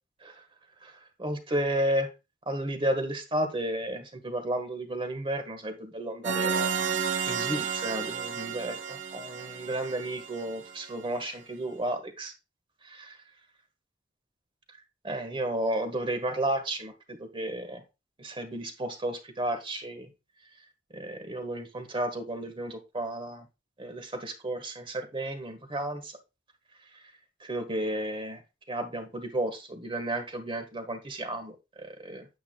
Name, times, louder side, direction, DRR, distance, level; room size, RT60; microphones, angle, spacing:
voice 1, 0.8-2.1 2.5-12.3 12.8-13.2 15.0-17.8 18.2-20.1 20.9-23.5 23.8-26.2 27.4-28.4 28.7-32.3, right 1 dB, 25° right, 7 dB, 1.4 m, -33 dB
sound 1, 6.2-10.9, right 6 dB, 75° right, 0.9 m, -32 dB
9.4 x 8.4 x 2.3 m, 0.26 s
head